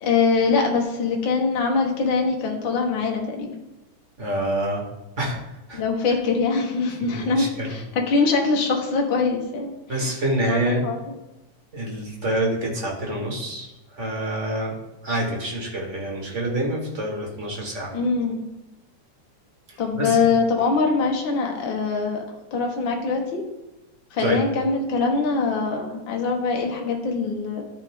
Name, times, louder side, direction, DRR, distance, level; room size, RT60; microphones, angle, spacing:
voice 1, 0.0-3.5 5.7-9.7 10.0-10.1 10.5-11.0 17.9-18.4 19.8-22.2 22.5-23.4 24.1-27.6, left 4 dB, 50° left, 1 dB, 1.8 m, -23 dB
voice 2, 4.2-4.8 5.2-5.4 5.7-5.8 7.0-7.8 9.9-10.9 11.7-14.7 15.0-17.9 19.7-20.2 24.2-24.4, right 1 dB, 30° right, -1 dB, 1.7 m, -27 dB
13.0 x 4.9 x 3.7 m, 0.98 s
omnidirectional pair, 3.4 m